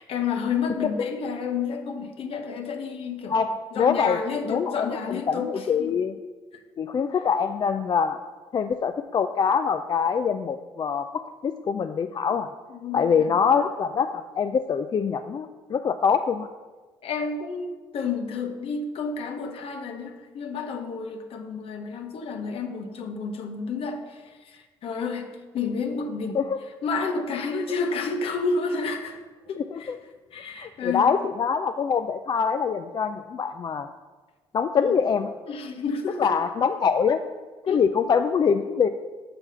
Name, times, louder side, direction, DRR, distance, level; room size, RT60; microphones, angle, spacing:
voice 1, 0.0-3.4 3.7-5.9 6.5-6.6 12.7-13.3 17.0-24.2 24.5-26.4 26.8-29.2 29.5-29.9 30.3-31.1 34.8-35.0 35.5-36.3 37.7-37.8, left 5 dB, 65° left, 5 dB, 1.0 m, -30 dB
voice 2, 3.3-4.2 4.5-6.1 6.8-8.2 8.5-12.5 12.9-16.5 26.3-26.6 29.6-30.0 30.6-33.9 34.5-35.3 36.2-37.2 37.7-38.9, left 6 dB, 40° left, 8 dB, 0.4 m, -24 dB
6.9 x 5.8 x 5.5 m, 1.3 s
cardioid pair, 80°, 10 cm